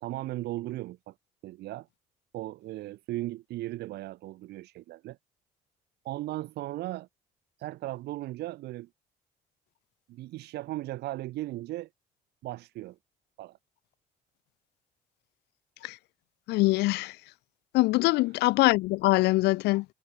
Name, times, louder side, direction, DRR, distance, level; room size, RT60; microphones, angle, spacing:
voice 1, 0.0-1.1 1.4-1.9 2.3-5.2 6.0-7.1 7.6-8.9 10.1-11.9 12.4-13.0 13.4-13.6, right 16 dB, 80° right, 2.0 m, -37 dB
voice 2, 16.5-17.1 17.7-19.8, left 20 dB, 80° left, 0.5 m, -23 dB
cardioid pair, 110°, 17 cm